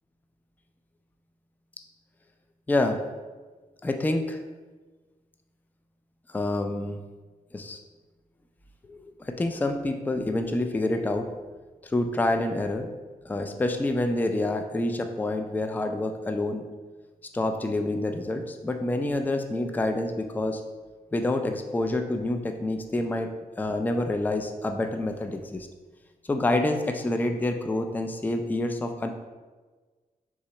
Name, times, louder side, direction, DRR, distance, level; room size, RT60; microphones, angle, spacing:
voice 1, 2.7-3.0 3.8-4.4 6.3-7.0 7.5-7.8 8.9-11.5 11.8-12.9 13.2-16.6 17.3-20.6 21.1-25.7 26.2-29.1, left 2 dB, 10° left, 6 dB, 0.3 m, -27 dB
3.6 x 2.9 x 4.3 m, 1.3 s
cardioid pair, 90°, 15 cm